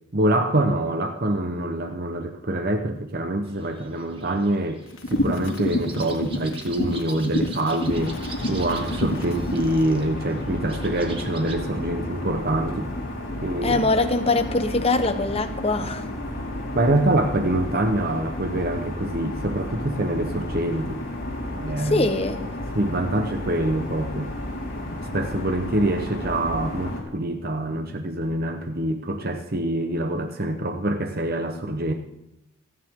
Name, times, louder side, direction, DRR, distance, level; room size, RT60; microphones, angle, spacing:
voice 1, 0.1-4.8 5.1-12.9 13.4-13.8 16.7-21.0 21.5-22.1 22.7-24.3 25.1-31.9, right 1 dB, 45° right, 1.0 m, -25 dB
sound 1, 3.4-11.6, right 3 dB, 25° right, 2.0 m, -43 dB
sound 2, 4.9-9.8, left 1 dB, 70° left, 2.9 m, -28 dB
sound 3, 7.9-27.0, left 1 dB, 45° left, 4.6 m, -32 dB
voice 2, 13.6-16.1 21.8-22.6, left 2 dB, 25° left, 1.2 m, -23 dB
28.0 x 10.0 x 3.8 m
head